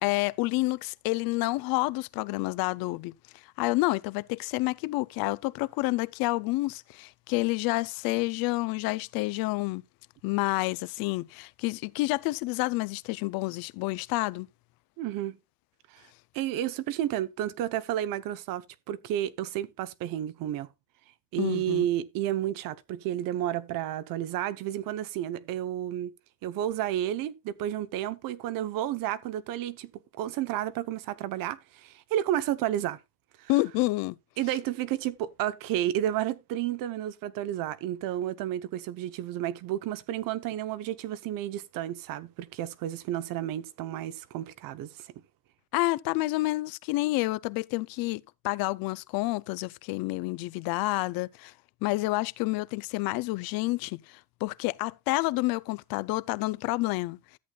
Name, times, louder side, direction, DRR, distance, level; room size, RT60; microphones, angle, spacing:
voice 1, 0.0-3.1 3.6-9.8 10.2-14.5 21.4-21.9 33.5-34.1 45.7-51.5 51.8-57.2, left 20 dB, 80° left, 0.6 m, -29 dB
voice 2, 15.0-15.4 15.9-16.0 16.3-20.7 21.3-26.1 26.4-33.0 33.4-33.5 34.4-45.1, right 12 dB, 70° right, 0.9 m, -31 dB
13.5 x 8.4 x 2.3 m
cardioid pair, 150°, 35 cm